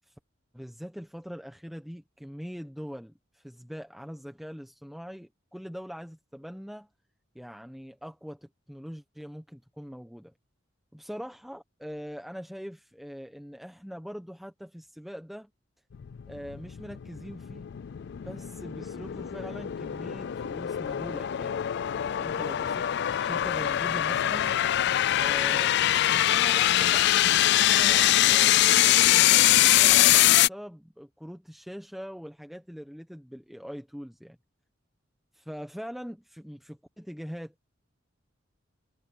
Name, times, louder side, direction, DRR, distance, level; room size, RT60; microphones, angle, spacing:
voice 1, 0.5-6.9 7.3-10.3 10.9-15.5 16.3-17.7 18.2-21.7 22.2-22.9 23.2-24.6 25.2-34.4 35.5-37.5, equal, ahead, 1.0 m, -42 dB
sound 1, 15.9-30.5, left 13 dB, 60° left, 0.4 m, -23 dB
head